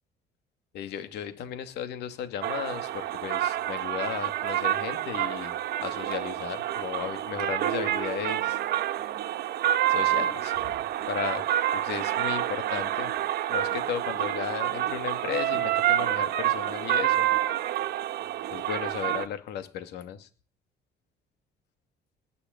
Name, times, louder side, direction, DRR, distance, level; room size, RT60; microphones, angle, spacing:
voice 1, 0.7-8.8 9.9-10.8 11.1-13.1 13.5-17.3 18.5-20.3, left 9 dB, 80° left, 9 dB, 2.5 m, -35 dB
sound 1, 2.4-19.3, right 12 dB, 70° right, 1.4 m, -28 dB
19.5 x 7.0 x 9.4 m, 0.40 s
cardioid pair, 110°, 17 cm